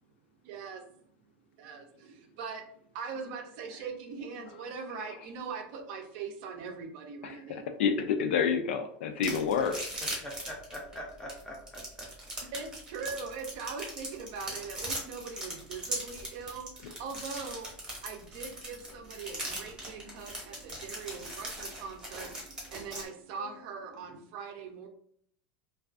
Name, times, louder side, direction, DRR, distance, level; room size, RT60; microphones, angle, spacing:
voice 1, 0.4-0.9 1.6-7.7 12.5-17.7 18.0-24.9, right 5 dB, 55° right, 4 dB, 0.5 m, -41 dB
voice 2, 7.2-9.9, left 6 dB, 85° left, 7 dB, 0.4 m, -29 dB
sound 1, 9.2-23.0, right 1 dB, 10° right, 0.8 m, -39 dB
voice 3, 10.2-12.1 12.4-12.5, equal, 10° left, -1 dB, 0.5 m, -43 dB
2.4 x 2.3 x 2.4 m, 0.66 s
supercardioid pair, 155°, 6 cm